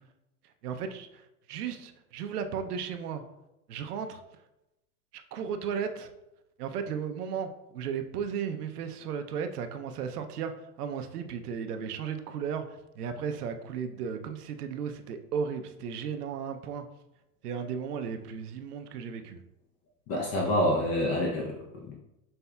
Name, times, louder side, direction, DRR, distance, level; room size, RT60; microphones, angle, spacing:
voice 1, 0.6-3.2 3.7-4.2 5.1-6.1 6.6-16.9 17.4-19.4, right 7 dB, 70° right, 7 dB, 0.6 m, -35 dB
voice 2, 20.1-21.9, left 1 dB, 30° left, -1 dB, 0.7 m, -27 dB
5.6 x 3.4 x 2.2 m, 0.90 s
hypercardioid pair, 95°, 47 cm